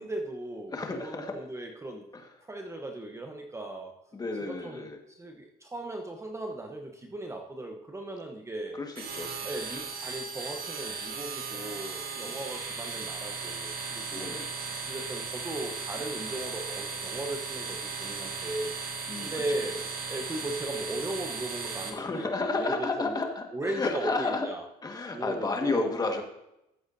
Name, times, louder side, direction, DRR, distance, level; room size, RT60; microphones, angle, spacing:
voice 1, 0.0-2.0 2.5-3.9 4.4-8.8 9.4-14.3 14.8-18.8 19.2-19.8 20.1-23.2 23.5-24.6 25.1-26.0, right 1 dB, 15° right, 3 dB, 1.0 m, -37 dB
voice 2, 0.7-1.4 2.1-2.2 4.1-5.0 8.8-9.5 12.3-12.4 14.1-14.5 19.1-19.4 21.9-24.5 24.8-26.2, left 3 dB, 20° left, 3 dB, 1.6 m, -32 dB
sound 1, 8.9-21.9, right 5 dB, 65° right, 1.8 m, -37 dB
14.0 x 7.8 x 2.7 m, 0.86 s
cardioid pair, 110°, 17 cm